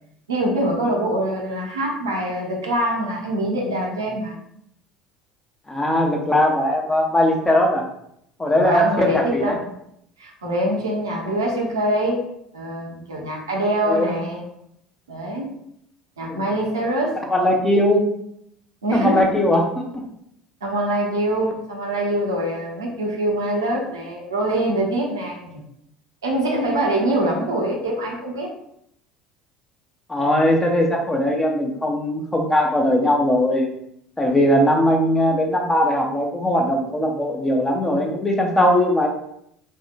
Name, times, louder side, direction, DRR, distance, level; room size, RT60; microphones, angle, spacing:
voice 1, 0.3-4.4 8.5-9.6 10.2-12.3 12.5-14.5 15.1-15.5 16.2-17.2 18.8-19.4 20.6-25.6 26.2-28.5, right 1 dB, 80° right, -1 dB, 0.6 m, -24 dB
voice 2, 5.7-7.8 8.4-9.6 13.8-14.1 16.3-16.4 17.3-18.0 18.9-20.0 30.1-33.7 34.2-39.1, left 1 dB, 15° left, 0 dB, 0.6 m, -19 dB
2.6 x 2.1 x 2.5 m, 0.74 s
figure-of-eight pair, 65°, 2 cm